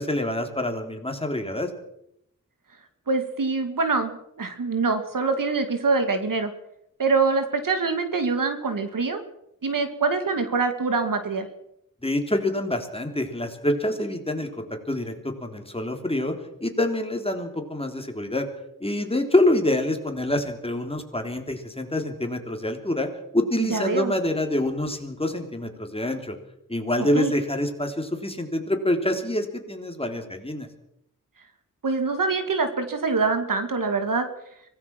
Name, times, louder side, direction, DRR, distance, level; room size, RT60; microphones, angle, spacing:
voice 1, 0.0-1.7 12.0-16.3 16.6-18.5 18.8-23.1 23.3-26.4 26.7-30.7, left 1 dB, 15° left, 5 dB, 3.4 m, -26 dB
voice 2, 3.1-6.5 7.0-9.2 9.6-11.5 23.6-24.1 27.1-27.3 31.8-34.3, right 4 dB, 75° right, 8 dB, 2.4 m, -24 dB
24.5 x 18.0 x 6.1 m, 0.77 s
wide cardioid pair, 85°, 33 cm